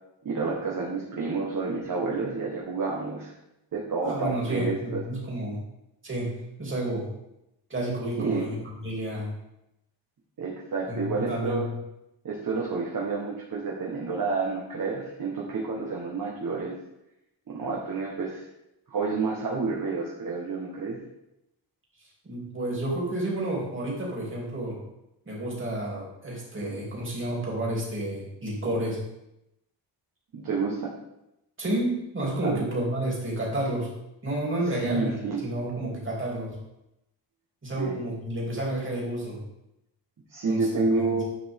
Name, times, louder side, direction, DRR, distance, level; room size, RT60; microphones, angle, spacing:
voice 1, 0.2-3.3 3.7-5.0 8.2-8.5 10.4-11.7 12.2-16.7 17.5-18.5 18.9-21.0 30.3-30.9 32.4-32.6 34.8-35.4 37.7-38.0 40.3-41.2, right 4 dB, 45° right, -3 dB, 1.5 m, -29 dB
voice 2, 4.0-5.6 6.0-6.3 6.6-7.1 7.7-9.3 10.9-11.8 22.2-24.8 25.3-29.0 31.6-33.9 34.2-36.6 37.6-39.4 40.5-41.2, right 1 dB, 25° right, -4 dB, 2.9 m, -30 dB
10.0 x 5.2 x 3.7 m, 0.87 s
wide cardioid pair, 120°, 44 cm